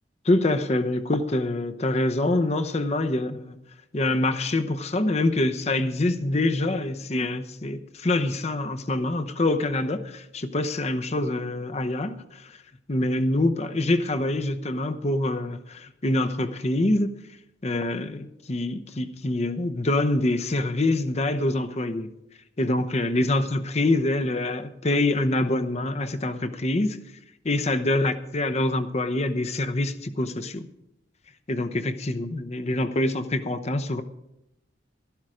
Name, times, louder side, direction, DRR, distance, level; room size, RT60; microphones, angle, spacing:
voice 1, 0.2-3.6 3.9-12.6 12.9-17.1 17.6-22.1 22.6-27.0 27.4-30.7 31.5-34.0, left 2 dB, 35° left, 0.8 m, -25 dB
12.0 x 12.0 x 5.0 m
head